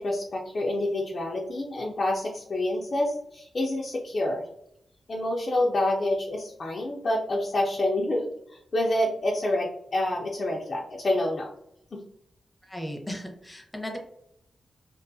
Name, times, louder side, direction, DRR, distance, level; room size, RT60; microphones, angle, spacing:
voice 1, 0.0-4.5 5.1-11.5 11.9-12.0, left 1 dB, 55° left, -2 dB, 0.4 m, -27 dB
voice 2, 12.6-14.0, equal, 15° left, 2 dB, 0.8 m, -36 dB
2.5 x 2.3 x 2.6 m, 0.75 s
cardioid pair, 60°, 0 cm